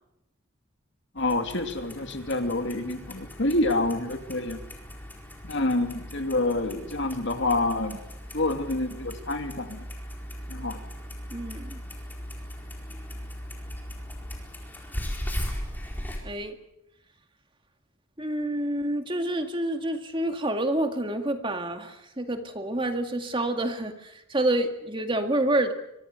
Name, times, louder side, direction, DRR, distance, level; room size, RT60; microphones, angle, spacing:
voice 1, 1.1-4.6 5.4-8.0 8.3-9.8 10.5-10.8, left 2 dB, 55° left, 6 dB, 2.4 m, -27 dB
Clock, 1.2-16.2, equal, 10° left, 4.5 m, -38 dB
voice 2, 11.3-11.8 16.2-16.5 18.2-25.7, right 1 dB, 25° right, 6 dB, 2.0 m, -28 dB
25.5 x 24.0 x 6.9 m, 0.84 s
head